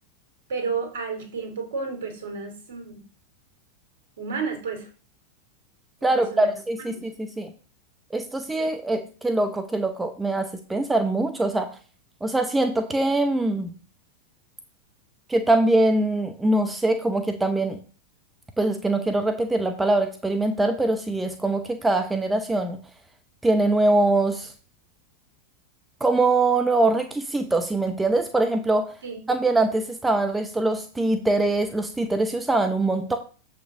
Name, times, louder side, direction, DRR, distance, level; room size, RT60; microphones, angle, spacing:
voice 1, 0.5-3.0 4.2-4.9 6.0-6.5 6.9-7.0 29.0-29.2, right 5 dB, 60° right, 5 dB, 2.6 m, -31 dB
voice 2, 6.0-7.5 8.1-11.7 12.2-13.7 15.3-17.8 18.6-22.8 23.4-24.5 26.0-28.9 29.3-33.2, right 2 dB, 10° right, 6 dB, 0.8 m, -23 dB
7.8 x 5.8 x 3.8 m, 0.38 s
figure-of-eight pair, 90°, 0 cm